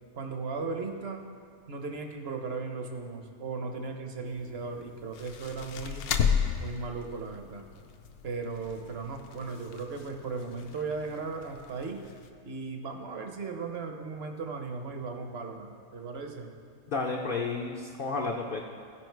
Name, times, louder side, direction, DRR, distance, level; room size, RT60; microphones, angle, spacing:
voice 1, 0.1-1.2 1.7-6.1 6.6-7.6 8.2-12.0 12.4-16.5, right 4 dB, 50° right, 4 dB, 1.0 m, -37 dB
sound 1, 4.3-12.3, left 7 dB, 80° left, 1.1 m, -35 dB
voice 2, 16.9-18.6, left 3 dB, 55° left, 0 dB, 0.6 m, -31 dB
15.5 x 5.2 x 4.5 m, 2.2 s
omnidirectional pair, 1.6 m